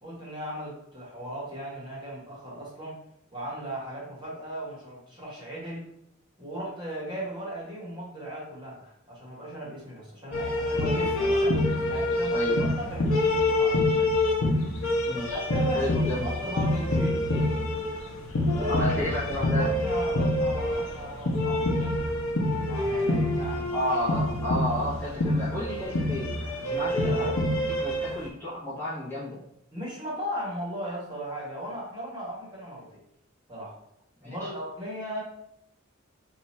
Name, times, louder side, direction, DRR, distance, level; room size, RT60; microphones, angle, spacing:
voice 1, 0.0-3.0 3.3-5.9 6.4-11.5 11.9-14.0 15.3-15.9 16.2-17.2 18.5-19.0 19.5-22.1 22.7-23.7 26.7-27.4 29.7-33.0 33.5-33.7 34.2-35.2, equal, 20° right, -6 dB, 1.1 m, -37 dB
sound 1, 10.3-28.2, left 1 dB, 70° left, 0.7 m, -26 dB
voice 2, 11.2-11.6 12.3-12.7 15.1-15.4 15.7-16.4 18.7-19.7 23.7-26.4 26.6-27.4 27.7-29.4 34.2-34.5, left 1 dB, 10° left, -10 dB, 1.1 m, -32 dB
2.8 x 2.4 x 4.2 m, 0.77 s
head